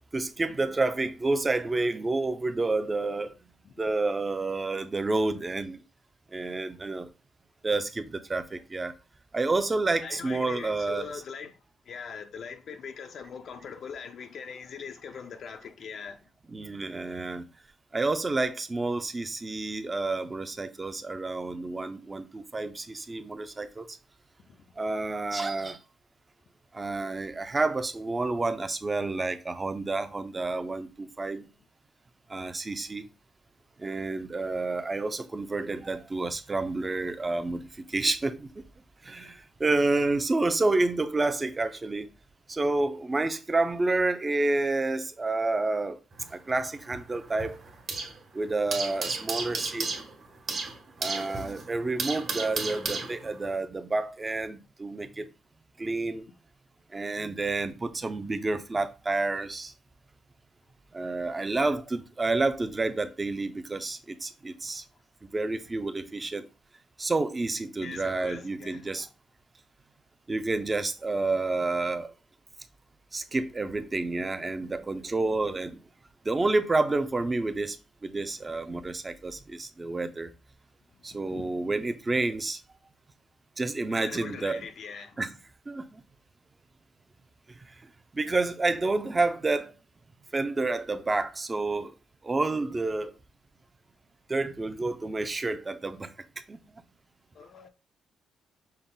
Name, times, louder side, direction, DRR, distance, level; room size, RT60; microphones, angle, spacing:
voice 1, 0.1-3.3 3.8-5.8 6.3-7.1 7.6-8.9 9.3-11.1 16.5-17.4 17.9-23.9 24.8-25.8 26.7-31.5 32.3-33.1 33.8-38.5 39.0-42.1 42.5-46.0 46.3-47.6 48.3-49.9 51.0-55.3 55.8-56.3 56.9-59.7 60.9-64.8 65.3-66.5 67.0-69.1 70.3-72.1 73.1-75.8 76.2-77.8 78.0-80.3 81.0-82.6 83.6-84.7 85.2-85.3 85.7-86.0 88.1-89.7 90.3-91.9 92.2-93.1 94.3-96.1 96.5-96.6, right 3 dB, 25° right, 0.5 m, -29 dB
voice 2, 10.0-11.6 11.9-16.2 24.5-24.6 39.2-39.4 39.9-40.0 67.8-69.0 81.1-81.5 83.9-85.2 97.3-97.7, left 6 dB, 60° left, 0.5 m, -41 dB
sound 1, 46.1-48.2 48.5-53.5, right 4 dB, 50° right, 1.4 m, -34 dB
5.5 x 2.0 x 3.8 m
cardioid pair, 90°, 0 cm